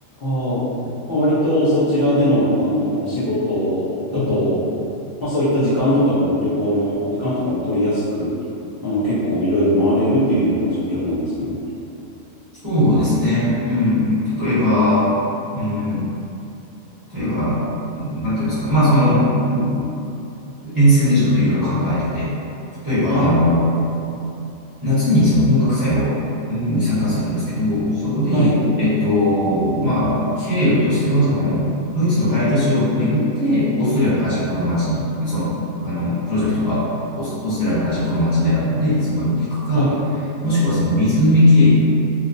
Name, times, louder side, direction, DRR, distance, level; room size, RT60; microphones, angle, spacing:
voice 1, 0.2-0.6 1.1-4.6 5.2-8.3 8.8-11.6 23.1-23.3 28.3-28.6 39.7-40.0, equal, 50° left, -13 dB, 0.8 m, -20 dB
voice 2, 12.6-14.1 14.4-15.1 15.5-16.0 17.1-17.6 17.9-19.9 20.6-22.3 22.8-23.6 24.8-26.2 26.5-35.5 35.8-39.9 40.4-41.8, left 1 dB, 20° right, -14 dB, 0.8 m, -19 dB
2.9 x 2.0 x 2.5 m, 2.8 s
omnidirectional pair, 1.4 m